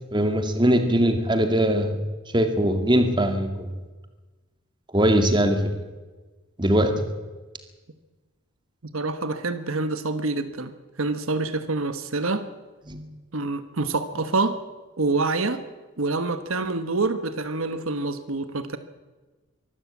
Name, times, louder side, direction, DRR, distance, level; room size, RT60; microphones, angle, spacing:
voice 1, 0.1-2.0 2.3-3.7 4.9-5.7 6.6-7.0 12.9-13.0, equal, 20° right, 7 dB, 2.1 m, -21 dB
voice 2, 8.9-12.5 13.3-14.6 15.0-15.6 16.0-18.8, right 3 dB, 75° right, 11 dB, 1.3 m, -26 dB
23.5 x 13.5 x 8.5 m, 1.3 s
head